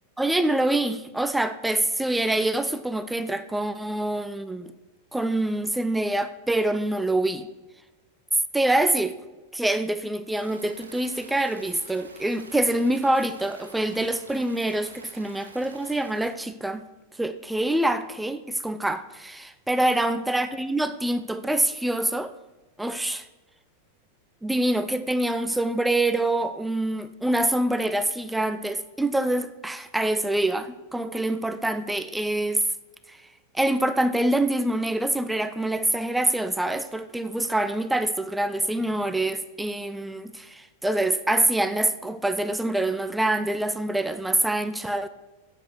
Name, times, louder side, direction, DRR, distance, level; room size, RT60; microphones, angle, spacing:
voice 1, 0.2-4.7 5.1-7.5 8.5-9.2 9.5-16.8 17.2-22.3 22.8-23.3 24.4-32.6 33.1-33.2 33.5-45.1, right 1 dB, 5° right, 0.7 m, -25 dB
Stream, 10.3-16.3, right 3 dB, 75° right, 1.4 m, -48 dB
10.5 x 8.1 x 6.8 m
figure-of-eight pair, 90°, 0 cm